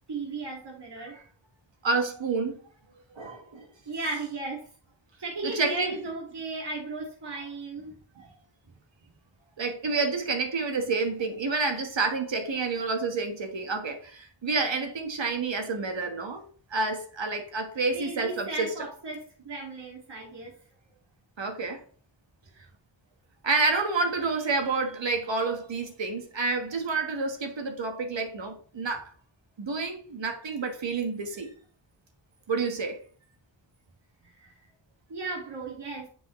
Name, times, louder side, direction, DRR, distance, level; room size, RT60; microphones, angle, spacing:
voice 1, 0.1-1.2 3.9-4.7 5.2-8.2 17.9-20.6 34.2-34.6 35.1-36.1, right 3 dB, 65° right, 2.3 m, -36 dB
voice 2, 1.8-2.6 3.1-3.7 5.4-5.9 8.2-8.3 9.6-18.7 21.4-21.8 23.4-29.1 29.6-31.5 32.5-33.0, right 4 dB, 90° right, 1.5 m, -29 dB
9.3 x 5.4 x 3.2 m
wide cardioid pair, 70°, 43 cm